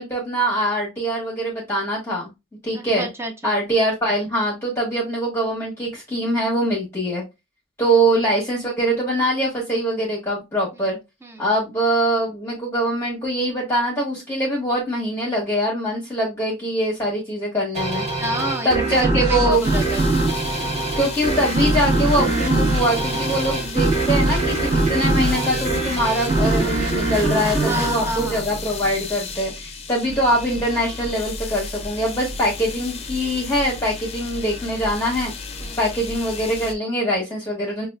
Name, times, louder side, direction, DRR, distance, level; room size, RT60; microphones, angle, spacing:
voice 1, 0.0-2.3 2.6-3.1 3.4-7.2 7.8-11.0 11.4-18.0 18.6-19.6 20.9-35.3 35.8-37.9, right 1 dB, 15° left, 1.0 m, -23 dB
voice 2, 2.7-3.6 7.8-8.0 11.2-11.4 18.2-20.1 27.7-28.5 35.6-35.8, right 1 dB, 15° right, 0.5 m, -29 dB
sound 1, 17.7-29.0, right 2 dB, 35° right, 1.2 m, -22 dB
sound 2, 19.5-36.7, left 3 dB, 35° left, 0.5 m, -34 dB
5.7 x 2.3 x 2.3 m
head